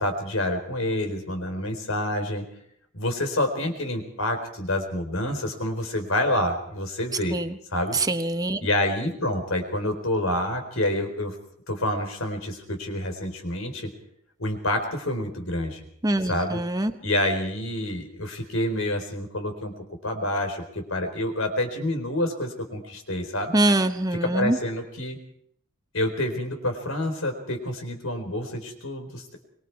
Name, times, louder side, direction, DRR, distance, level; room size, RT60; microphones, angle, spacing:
voice 1, 0.0-2.4 2.9-7.4 7.7-8.0 8.6-11.4 11.7-13.9 14.4-15.8 16.2-16.6 17.0-19.7 20.0-23.6 24.2-25.2 25.9-29.4, left 1 dB, 85° left, 5 dB, 4.3 m, -28 dB
voice 2, 7.9-8.6 16.0-16.9 23.5-24.6, right 1 dB, 20° right, 8 dB, 1.0 m, -23 dB
25.0 x 22.5 x 4.8 m, 0.70 s
head